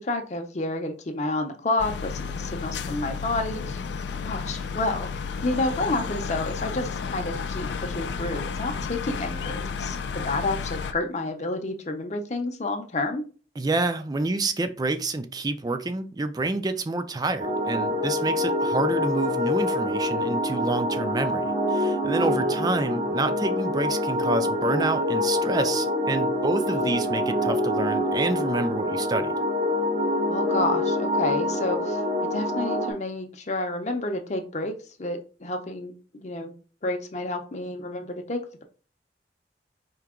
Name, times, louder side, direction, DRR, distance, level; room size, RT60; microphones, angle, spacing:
voice 1, 0.0-3.8 4.2-5.1 5.4-13.2 22.2-22.5 26.7-26.8 30.3-32.0 32.3-36.5 36.8-38.6, left 2 dB, 40° left, 5 dB, 0.7 m, -30 dB
sound 1, 1.8-10.9, left 5 dB, 80° left, 0.4 m, -32 dB
voice 2, 13.6-29.3, right 2 dB, 20° right, 9 dB, 0.4 m, -28 dB
sound 2, 17.4-32.9, left 1 dB, 50° right, 1.1 m, -26 dB
4.6 x 2.8 x 3.6 m, 0.37 s
head